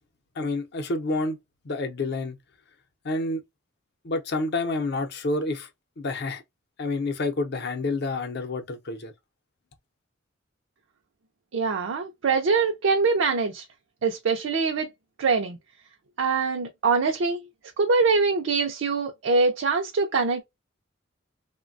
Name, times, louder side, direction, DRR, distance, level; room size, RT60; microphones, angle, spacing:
voice 1, 0.4-1.4 1.6-2.4 3.0-3.4 4.0-5.7 6.0-6.4 6.8-9.1, left 2 dB, 55° left, 0.6 m, -28 dB
voice 2, 11.5-13.6 14.0-14.9 15.2-15.6 16.2-17.5 17.8-20.4, right 4 dB, 70° right, 0.4 m, -23 dB
3.2 x 2.1 x 2.5 m
head